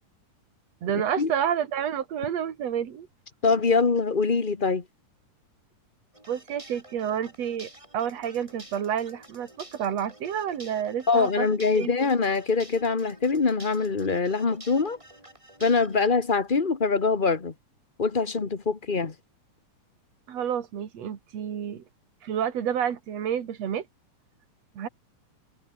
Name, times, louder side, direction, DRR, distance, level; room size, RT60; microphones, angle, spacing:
voice 1, 0.8-3.1 6.3-11.5 11.8-12.1 20.3-21.8 22.2-23.9 24.7-24.9, right 9 dB, 55° right, 3.2 m, -29 dB
voice 2, 3.4-4.8 11.1-15.0 15.6-17.5 18.0-19.1, left 4 dB, 65° left, 0.5 m, -24 dB
sound 1, 6.1-16.1, right 1 dB, 10° right, 3.9 m, -50 dB
omnidirectional pair, 3.5 m